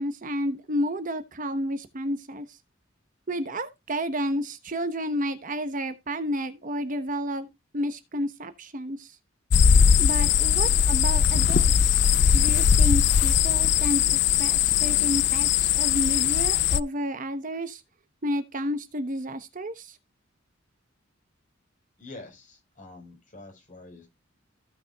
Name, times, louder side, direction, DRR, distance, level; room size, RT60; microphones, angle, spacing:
voice 1, 0.0-2.6 3.3-7.5 7.7-9.2 10.0-12.0 12.3-17.8 18.2-20.0, equal, 40° right, 1.0 m, -31 dB
sound 1, 9.5-16.8, left 8 dB, 60° left, 0.4 m, -20 dB
voice 2, 22.0-24.1, left 2 dB, 40° left, 4.5 m, -46 dB
16.0 x 5.9 x 2.3 m
head